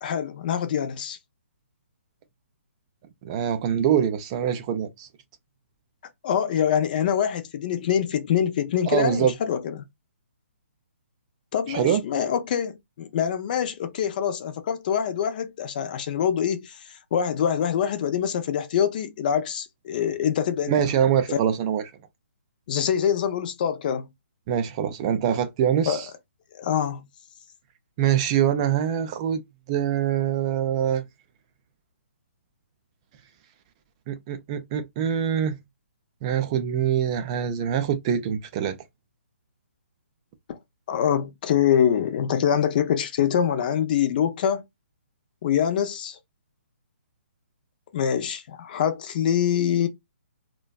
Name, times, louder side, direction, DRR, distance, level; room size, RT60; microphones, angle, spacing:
voice 1, 0.0-1.2 6.2-9.8 11.5-20.7 21.3-21.4 22.7-24.1 25.9-26.0 26.5-27.1 40.5-40.6 40.9-44.6 45.4-46.2 47.9-49.9, left 8 dB, 40° left, 0.4 m, -25 dB
voice 2, 3.2-5.1 8.9-9.3 11.7-12.0 20.7-21.8 24.5-26.1 28.0-29.4 29.7-31.0 34.1-35.6 36.2-38.8, right 9 dB, 25° right, 0.3 m, -24 dB
2.5 x 2.2 x 2.2 m
hypercardioid pair, 140°, 7 cm